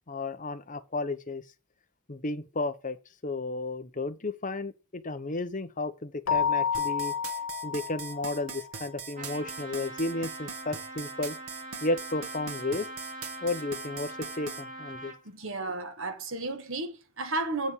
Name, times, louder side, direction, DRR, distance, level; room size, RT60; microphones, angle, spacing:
voice 1, 0.1-1.4 2.1-3.0 3.2-7.1 7.6-11.4 11.8-12.9 13.4-15.1, left 2 dB, 35° left, 1.0 m, -33 dB
Keyboard (musical), 6.3-8.7, left 7 dB, 65° left, 0.6 m, -30 dB
sound 1, 6.7-14.6, right 6 dB, 80° right, 1.9 m, -41 dB
Trumpet, 9.2-15.2, right 1 dB, 35° right, 1.6 m, -42 dB
voice 2, 15.3-17.7, right 2 dB, 60° right, 1.7 m, -33 dB
8.2 x 5.2 x 7.3 m
head